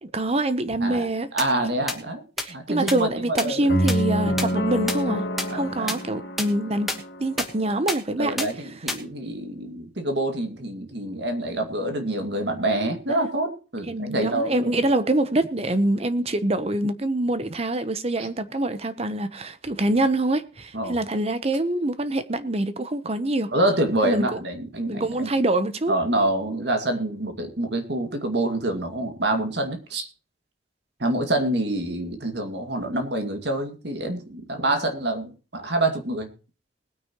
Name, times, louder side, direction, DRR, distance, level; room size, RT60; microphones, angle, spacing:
voice 1, 0.0-1.3 2.4-5.2 5.5-6.9 7.2-8.5 13.1-13.2 13.9-23.5 24.0-24.3 24.8-25.9, right 1 dB, 35° right, 0.9 m, -25 dB
voice 2, 1.3-2.2 2.5-3.7 5.5-5.9 8.2-14.9 18.2-18.3 20.7-21.0 23.5-25.3 25.9-30.1 31.0-36.3, right 1 dB, 65° right, 2.3 m, -26 dB
sound 1, 1.4-1.5 1.9-2.0 2.4-2.5 2.9-3.0 3.4-3.5 3.9-4.0 4.4-4.5 4.9-5.0 5.4-5.5 5.9-6.0 6.4-6.5 6.9-7.0 7.4-7.5 7.9-8.0 8.4-8.5 8.9-9.0, left 1 dB, ahead, 1.4 m, -26 dB
sound 2, 3.7-7.8, equal, 60° left, 2.2 m, -27 dB
20.5 x 9.4 x 3.1 m
head